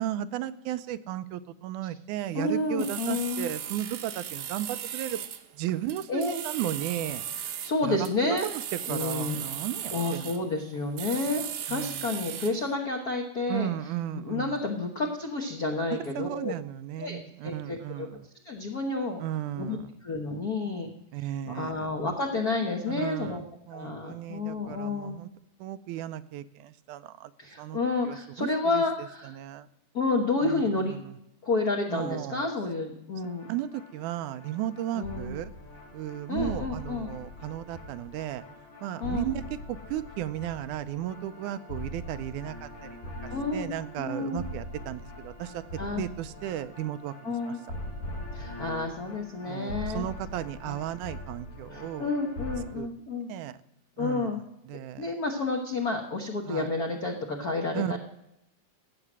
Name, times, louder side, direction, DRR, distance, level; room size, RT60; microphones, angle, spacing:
voice 1, 0.0-5.2 5.5-7.2 7.8-8.0 8.3-10.4 11.7-12.2 13.5-14.7 16.2-18.3 19.2-19.9 21.1-21.9 22.9-25.3 25.6-27.3 27.6-27.8 28.0-28.8 29.2-29.7 30.4-30.6 30.9-31.2 31.9-32.5 33.5-35.5 35.9-38.4 38.8-42.7 43.0-45.6 46.0-47.5 49.4-52.1 52.8-52.9 53.3-53.5 54.0-54.3 54.7-55.1 56.5-56.7 57.7-58.0, right 12 dB, 85° right, 13 dB, 2.1 m, -35 dB
voice 2, 2.3-3.5 6.1-6.4 7.6-8.5 8.9-9.4 9.9-13.7 14.1-16.5 17.0-18.1 18.4-19.2 19.6-19.8 20.0-20.9 21.2-23.4 23.7-25.2 27.4-29.3 29.9-31.0 31.4-33.5 34.9-35.3 36.3-37.1 39.0-39.2 43.3-43.7 44.0-44.4 45.8-46.0 47.2-47.6 48.3-50.1 50.7-50.8 51.7-53.3 54.0-54.4 55.0-58.0, left 3 dB, 65° left, 2 dB, 0.9 m, -30 dB
sound 1, 2.3-12.7, right 9 dB, 65° right, 1.5 m, -37 dB
sound 2, 33.2-52.6, left 1 dB, 90° left, 5.2 m, -42 dB
15.5 x 7.8 x 6.1 m, 0.81 s
omnidirectional pair, 3.6 m